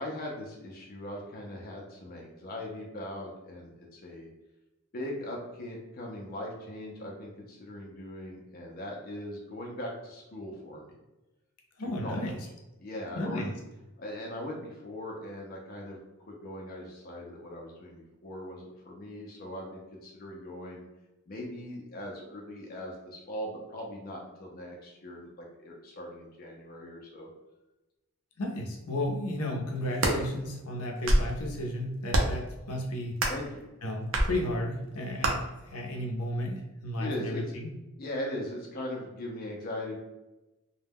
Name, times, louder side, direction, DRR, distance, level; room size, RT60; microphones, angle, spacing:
voice 1, 0.0-4.3 4.9-10.9 12.0-12.3 12.8-13.6 14.0-20.8 21.3-27.3 33.3-33.7 37.0-37.6 38.0-40.0, left 1 dB, 45° left, -1 dB, 0.4 m, -40 dB
voice 2, 11.8-12.4 13.2-13.5 28.4-33.1 33.8-37.7, left 1 dB, 90° left, 0 dB, 0.6 m, -33 dB
sound 1, 29.8-30.2 30.8-31.4 32.1-32.4 33.2-33.5 34.1-34.3 35.2-35.3, right 1 dB, 60° right, 0.5 m, -25 dB
2.2 x 2.1 x 3.4 m, 1.0 s
head